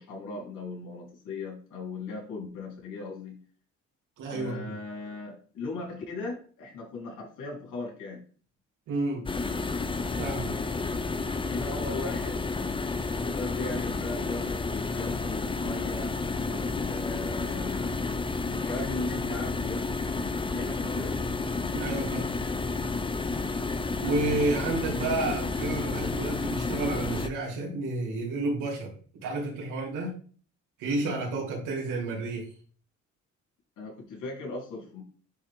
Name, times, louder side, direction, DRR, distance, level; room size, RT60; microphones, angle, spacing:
voice 1, 0.0-3.4 4.3-8.2 11.5-12.4 13.2-18.0 18.5-19.8 20.5-21.4 33.8-35.0, left 3 dB, 85° left, -2 dB, 3.7 m, -38 dB
voice 2, 4.2-4.7 8.9-9.3 10.2-10.5 20.9-21.1 21.7-22.3 24.0-28.9 29.2-30.1 30.8-32.5, right 2 dB, 90° right, -1 dB, 3.1 m, -30 dB
sound 1, 9.3-27.3, left 3 dB, 15° left, 0.6 m, -31 dB
10.0 x 3.9 x 3.6 m, 0.41 s
cardioid pair, 90°, 30 cm